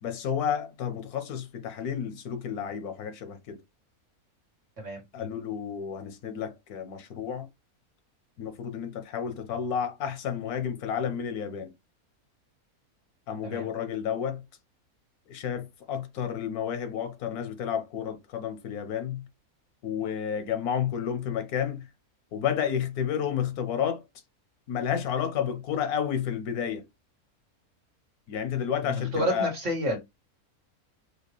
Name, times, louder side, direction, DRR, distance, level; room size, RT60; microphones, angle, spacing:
voice 1, 0.0-3.6 5.1-7.5 8.4-11.7 13.3-14.4 15.3-19.3 19.8-21.9 22.3-24.0 24.7-26.8 28.3-29.5, left 8 dB, 85° left, 1.3 m, -31 dB
voice 2, 28.9-30.0, equal, 55° right, 1.8 m, -29 dB
4.9 x 2.4 x 3.1 m
omnidirectional pair, 1.5 m